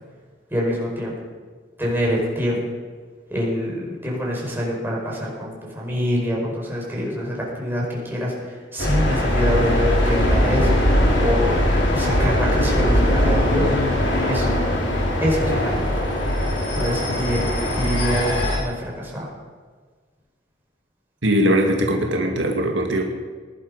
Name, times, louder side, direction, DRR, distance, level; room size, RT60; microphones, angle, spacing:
voice 1, 0.5-1.1 1.8-2.6 3.3-11.6 11.9-14.0 14.2-14.6 15.2-15.8 16.7-19.3, equal, 10° right, -3 dB, 5.3 m, -25 dB
sound 1, 8.8-18.6, left 1 dB, 70° left, 4.1 m, -20 dB
voice 2, 21.2-23.0, equal, 85° right, 2 dB, 2.1 m, -20 dB
20.0 x 11.5 x 5.5 m, 1.5 s
head